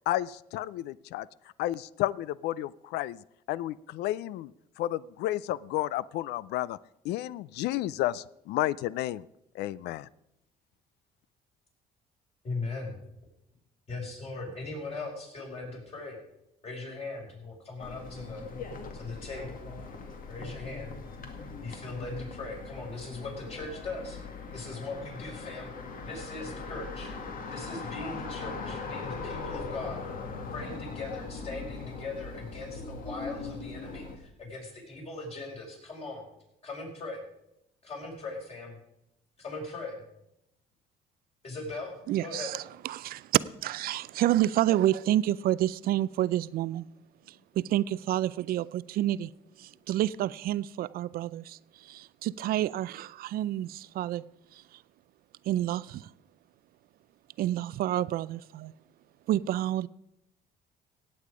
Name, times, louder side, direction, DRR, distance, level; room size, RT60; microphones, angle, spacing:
voice 1, 0.1-1.3 1.6-3.2 3.5-4.5 4.8-6.8 7.0-9.2 9.6-10.1, left 14 dB, 80° left, 0.4 m, -31 dB
voice 2, 12.4-13.0 13.9-16.2 16.6-18.4 18.9-19.6 20.3-21.0 21.6-24.2 24.5-25.7 26.0-27.1 27.5-30.0 30.5-36.2 36.6-37.2 37.8-38.8 39.4-40.0 41.4-42.5 47.2-47.4, left 3 dB, 35° left, 5.5 m, -39 dB
sound 1, 17.8-34.2, left 4 dB, 55° left, 1.8 m, -40 dB
voice 3, 42.1-42.6 42.8-46.9 47.6-49.3 49.6-54.2 55.5-56.1 57.4-58.7 59.3-59.9, right 13 dB, 65° right, 0.4 m, -29 dB
16.5 x 8.4 x 5.0 m
cardioid pair, 110°, 17 cm